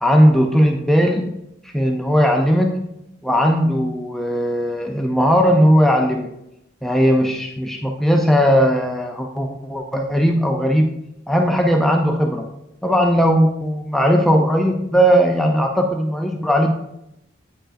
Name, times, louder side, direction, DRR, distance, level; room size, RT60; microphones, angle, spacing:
voice 1, 0.0-1.3 1.7-2.8 3.2-6.3 6.8-10.9 11.3-12.5 12.8-16.7, equal, ahead, 2 dB, 0.3 m, -17 dB
8.8 x 4.5 x 2.5 m, 0.85 s
head